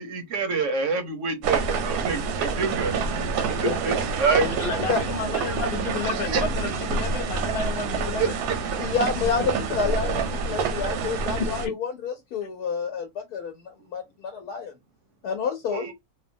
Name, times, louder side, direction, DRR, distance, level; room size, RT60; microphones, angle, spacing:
voice 1, 0.0-2.9 3.5-4.5 6.0-6.4 8.2-8.6 15.7-15.9, right 5 dB, 65° right, 0.8 m, -27 dB
sound 1, 1.4-11.7, right 5 dB, 85° right, 1.2 m, -27 dB
voice 2, 3.6-4.1 4.9-5.0 8.8-14.7 15.2-15.8, left 6 dB, 80° left, 1.2 m, -29 dB
voice 3, 4.4-8.4, left 5 dB, 50° left, 0.8 m, -31 dB
2.9 x 2.1 x 2.5 m
omnidirectional pair, 1.7 m